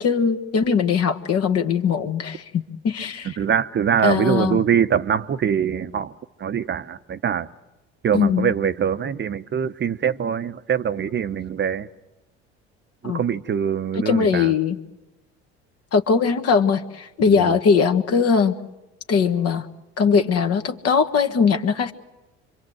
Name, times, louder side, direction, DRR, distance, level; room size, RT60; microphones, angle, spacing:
voice 1, 0.0-3.4 4.0-4.6 8.1-8.5 13.0-13.2 13.9-14.8 15.9-18.5 19.1-19.7 20.0-21.9, left 6 dB, 50° left, 1.5 m, -20 dB
voice 2, 3.3-6.1 6.4-7.5 8.0-11.9 13.0-14.5 17.2-17.5, right 8 dB, 35° right, 0.8 m, -23 dB
26.0 x 23.5 x 7.8 m
hypercardioid pair, 65°, 32 cm